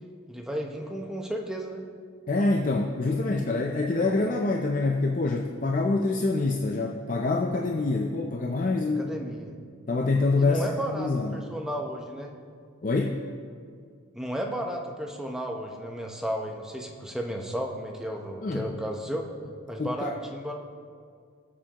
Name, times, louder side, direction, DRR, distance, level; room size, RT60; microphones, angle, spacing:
voice 1, 0.3-1.9 9.0-9.5 10.4-12.3 14.1-19.3 19.7-20.6, equal, 5° right, 1 dB, 0.7 m, -33 dB
voice 2, 2.3-9.1 9.9-10.6 10.9-11.4 12.8-13.2 18.4-18.7 19.8-20.2, left 3 dB, 35° left, 2 dB, 0.4 m, -26 dB
17.5 x 7.5 x 2.9 m, 2.1 s
head